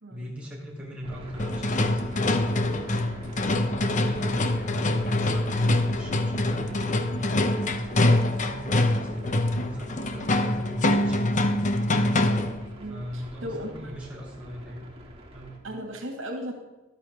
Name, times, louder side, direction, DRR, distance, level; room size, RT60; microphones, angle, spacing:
voice 1, 0.1-2.7 3.5-11.9 12.9-14.9 15.3-15.6, equal, 5° right, -5 dB, 3.8 m, -39 dB
sound 1, 1.0-15.6, right 1 dB, 30° right, 2.5 m, -45 dB
sound 2, 1.4-12.6, left 1 dB, 40° left, 0.9 m, -25 dB
voice 2, 12.8-14.0 15.6-16.5, equal, 80° right, 2 dB, 2.2 m, -36 dB
13.5 x 12.0 x 3.7 m, 1.0 s
head